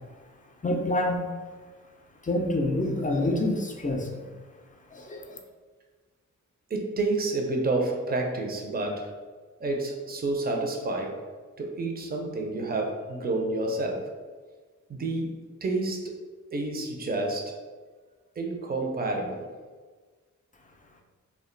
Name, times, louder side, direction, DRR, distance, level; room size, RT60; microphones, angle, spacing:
voice 1, 0.6-1.2 2.2-4.3 4.9-5.4, left 1 dB, 25° left, 2 dB, 0.4 m, -27 dB
voice 2, 6.7-9.1 9.6-11.2 11.6-14.1 14.9-16.2 16.5-17.6 18.4-19.5, right 2 dB, 30° right, 2 dB, 0.5 m, -29 dB
2.3 x 2.2 x 3.7 m, 1.4 s
cardioid pair, 60°, 32 cm